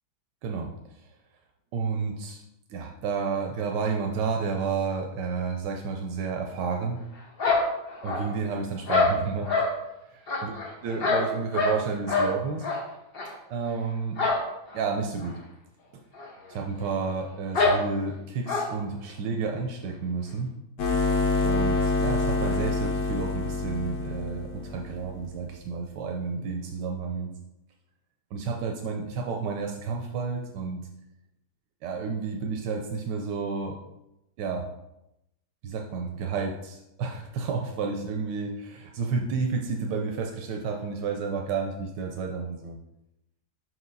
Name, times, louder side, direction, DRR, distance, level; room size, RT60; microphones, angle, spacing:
voice 1, 0.4-1.0 1.7-2.4 2.7-7.0 8.0-9.5 10.1-10.5 10.8-12.7 13.5-14.2 14.7-15.4 16.5-20.5 21.4-27.3 28.3-30.8 31.8-33.8 34.4-34.7 35.6-42.8, right 5 dB, 85° right, 2 dB, 1.3 m, -31 dB
sound 1, 7.4-8.4 8.9-9.7 10.3-11.8 12.1-12.3 12.6-12.8 13.1-13.3 14.2-14.5 14.7-14.8 15.2-15.3 16.1-16.3 16.5-16.6 17.5-17.8 18.5-18.7, left 3 dB, 40° left, 1.1 m, -25 dB
sound 2, 20.8-25.2, left 3 dB, 85° left, 1.6 m, -27 dB
5.7 x 4.8 x 3.9 m, 0.88 s
omnidirectional pair, 1.8 m